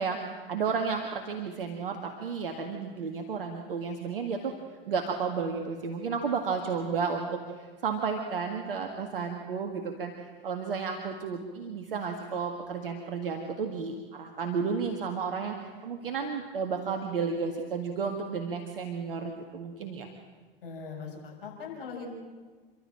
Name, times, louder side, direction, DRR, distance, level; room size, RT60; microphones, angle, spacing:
voice 1, 0.0-4.5 4.9-20.1, right 5 dB, 70° right, 4 dB, 1.9 m, -32 dB
voice 2, 20.6-22.1, left 5 dB, 65° left, -1 dB, 7.1 m, -40 dB
28.5 x 12.5 x 8.8 m, 1.4 s
figure-of-eight pair, 80°, 29 cm